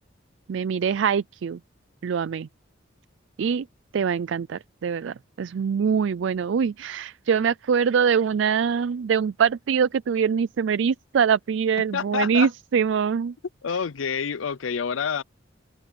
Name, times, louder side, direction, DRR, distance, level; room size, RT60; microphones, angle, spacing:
voice 1, 0.5-1.6 2.0-2.5 3.4-3.7 3.9-13.3, right 7 dB, 70° right, 0.4 m, -23 dB
voice 2, 11.9-12.5 13.6-15.2, left 6 dB, 85° left, 0.5 m, -27 dB
open air
head